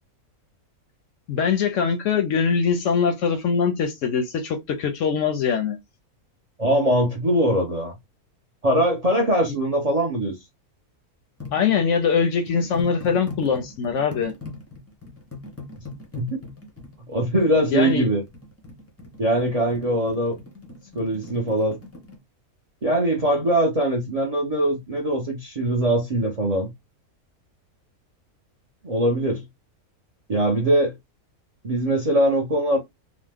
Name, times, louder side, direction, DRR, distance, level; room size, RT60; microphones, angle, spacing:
voice 1, 1.3-5.8 11.5-14.3 17.7-18.1, left 6 dB, 70° left, 0.8 m, -22 dB
voice 2, 6.6-7.9 8.6-10.3 16.2-16.4 17.1-18.2 19.2-20.4 20.9-21.8 22.8-26.7 28.8-29.4 30.3-31.0 31.6-32.8, right 1 dB, 50° right, 0.4 m, -22 dB
sound 1, 11.4-22.2, left 3 dB, 20° left, 0.4 m, -41 dB
2.9 x 2.0 x 3.3 m
omnidirectional pair, 1.6 m